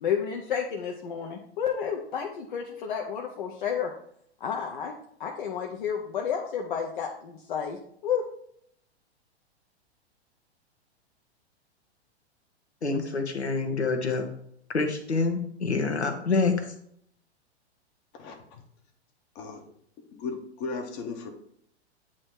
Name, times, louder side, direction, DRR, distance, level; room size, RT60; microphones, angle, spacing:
voice 1, 0.0-3.9 4.4-4.9 5.2-8.2, left 7 dB, 50° left, 2 dB, 0.8 m, -31 dB
voice 2, 12.8-14.3 14.7-16.6, left 4 dB, 75° left, 5 dB, 1.2 m, -26 dB
voice 3, 18.1-18.6 19.3-19.6 20.1-21.3, left 4 dB, 30° left, 4 dB, 1.1 m, -36 dB
8.7 x 3.1 x 4.5 m, 0.68 s
figure-of-eight pair, 105°, 33 cm